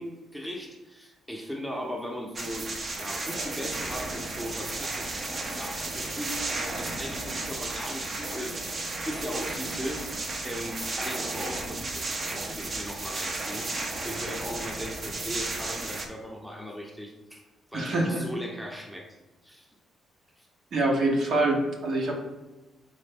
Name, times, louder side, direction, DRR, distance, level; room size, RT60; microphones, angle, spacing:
voice 1, 0.0-2.7 3.0-5.2 5.5-8.6 9.1-10.1 10.4-13.7 14.0-17.4 17.7-19.2 19.4-19.7 20.4-20.5, equal, ahead, 1 dB, 0.7 m, -38 dB
sound 1, 2.3-16.1, right 2 dB, 40° right, 0.7 m, -33 dB
voice 2, 17.7-18.2 20.7-22.1, right 2 dB, 60° right, 0 dB, 1.0 m, -25 dB
4.2 x 3.3 x 3.4 m, 1.1 s
cardioid pair, 90°, 0 cm